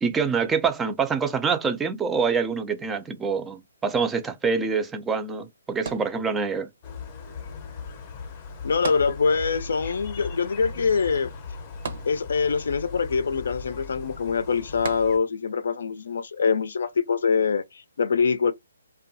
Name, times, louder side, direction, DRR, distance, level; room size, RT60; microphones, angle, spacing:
voice 1, 0.0-6.7, right 5 dB, 10° right, 0.3 m, -25 dB
sound 1, 5.9-6.8 8.8-9.7 10.0-10.1 11.9-12.7 14.8-15.6 16.3-16.4, right 5 dB, 50° right, 0.7 m, -36 dB
sound 2, 6.8-15.2, left 4 dB, 30° left, 0.7 m, -38 dB
voice 2, 8.6-11.3 12.0-18.5, left 5 dB, 70° left, 0.4 m, -24 dB
2.6 x 2.2 x 2.6 m
hypercardioid pair, 160°, 0 cm